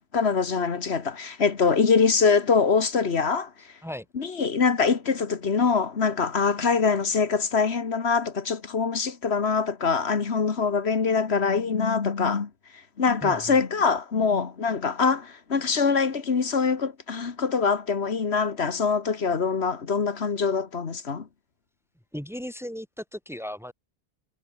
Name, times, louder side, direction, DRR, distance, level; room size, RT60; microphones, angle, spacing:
voice 1, 0.1-3.5 4.2-12.5 13.0-21.2, left 5 dB, 85° left, 1.9 m, -24 dB
voice 2, 13.2-13.6 22.1-23.7, equal, ahead, 4.7 m, -36 dB
omnidirectional pair, 1.1 m